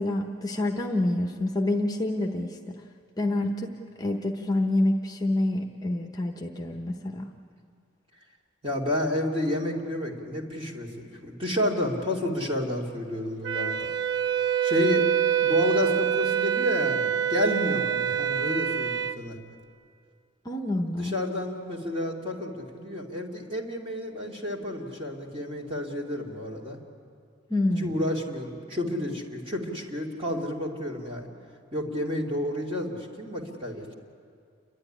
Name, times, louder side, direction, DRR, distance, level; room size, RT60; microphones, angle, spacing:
voice 1, 0.0-2.7 3.2-7.3 20.4-21.2 27.5-28.0, left 1 dB, 20° left, 3 dB, 0.9 m, -27 dB
voice 2, 8.6-13.9 14.6-15.1 15.4-19.4 20.9-26.8 27.8-31.3 31.7-33.9, left 1 dB, 30° right, -1 dB, 2.7 m, -30 dB
Wind instrument woodwind instrument, 13.4-19.2, right 9 dB, 65° right, 0.6 m, -26 dB
29.0 x 12.5 x 10.0 m, 2.3 s
head